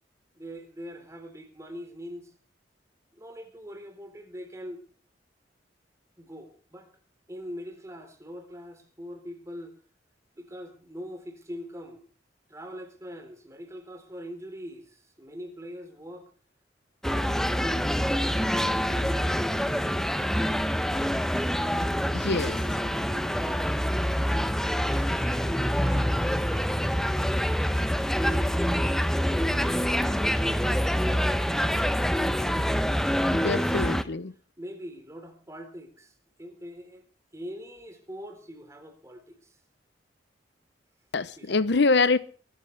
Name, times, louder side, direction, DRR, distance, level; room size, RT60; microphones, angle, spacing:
voice 1, 0.3-2.3 3.1-4.8 6.2-6.9 7.3-9.7 10.4-12.1 12.5-16.3 17.0-20.6 22.2-23.7 24.9-26.7 27.6-30.9 34.6-37.1 37.3-39.6 41.4-41.6, equal, 15° right, 3.9 m, -42 dB
sound 1, 17.0-34.0, equal, 5° left, 0.9 m, -26 dB
voice 2, 22.1-22.6 33.3-34.3 41.1-42.2, left 3 dB, 65° left, 0.8 m, -24 dB
23.0 x 13.5 x 3.4 m
head